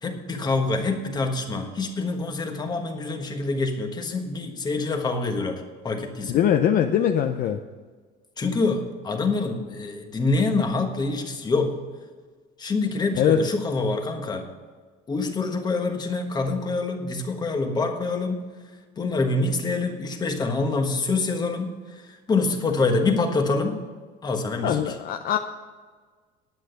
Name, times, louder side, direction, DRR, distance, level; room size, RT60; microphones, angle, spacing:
voice 1, 0.0-6.5 8.4-11.7 12.6-14.4 15.1-18.4 19.0-23.8 24.2-24.9, left 3 dB, 20° left, 4 dB, 1.3 m, -26 dB
voice 2, 6.3-7.6 13.1-13.4 24.6-25.4, left 10 dB, 50° left, 6 dB, 0.6 m, -21 dB
10.5 x 8.4 x 6.6 m, 1.5 s
cardioid pair, 150°, 19 cm